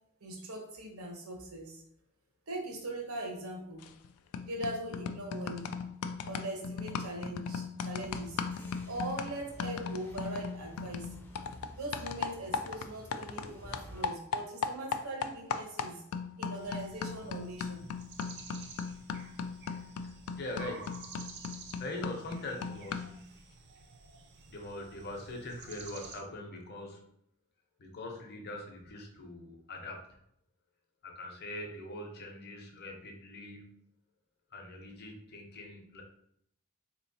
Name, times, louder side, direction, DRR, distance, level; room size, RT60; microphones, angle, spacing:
voice 1, 0.2-1.8 2.5-3.8 4.4-5.7 6.3-8.4 8.9-11.1 11.7-16.0 16.4-17.8, right 1 dB, 80° right, 1 dB, 0.9 m, -41 dB
sound 1, 3.8-4.1 4.3-13.5 13.7-23.2, left 6 dB, 80° left, 0.3 m, -38 dB
sound 2, 8.0-14.0, equal, 10° left, 0.4 m, -51 dB
sound 3, 16.5-26.2, right 4 dB, 50° right, 0.5 m, -51 dB
voice 2, 20.0-21.0 21.8-23.1 24.5-27.0 27.8-30.1 31.0-33.7 34.5-36.0, left 2 dB, 50° left, 2 dB, 0.7 m, -42 dB
3.9 x 3.0 x 2.7 m, 0.72 s
head